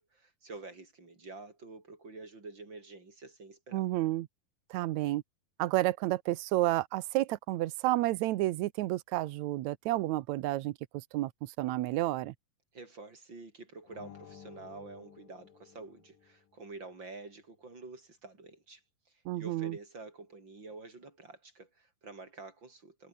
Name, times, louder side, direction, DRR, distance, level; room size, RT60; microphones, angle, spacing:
voice 1, 0.0-3.9 12.7-18.8 19.3-23.1, right 3 dB, 30° right, 6.2 m, -48 dB
voice 2, 3.7-4.3 4.7-5.2 5.6-12.3 19.2-19.8, right 16 dB, 80° right, 1.6 m, -31 dB
sound 1, 13.9-16.6, left 8 dB, 65° left, 4.4 m, -54 dB
omnidirectional pair, 4.2 m